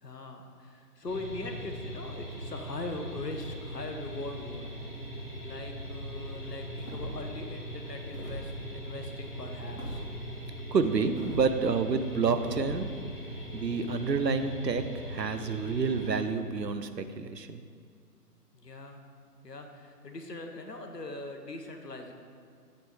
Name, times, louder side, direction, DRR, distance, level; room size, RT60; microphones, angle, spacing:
voice 1, 0.0-4.8 5.4-10.0 18.5-19.0 19.4-22.1, left 2 dB, 75° left, 4 dB, 1.1 m, -41 dB
sound 1, 1.1-16.2, equal, 30° left, 1.1 m, -40 dB
sound 2, 6.8-7.3 8.1-8.5 9.8-10.0 11.2-11.5 12.4-12.9, equal, 55° left, 2.0 m, -40 dB
voice 2, 10.7-12.9 13.5-17.6, right 5 dB, 85° right, 10 dB, 0.7 m, -29 dB
8.2 x 4.4 x 4.9 m, 2.1 s
figure-of-eight pair, 150°, 48 cm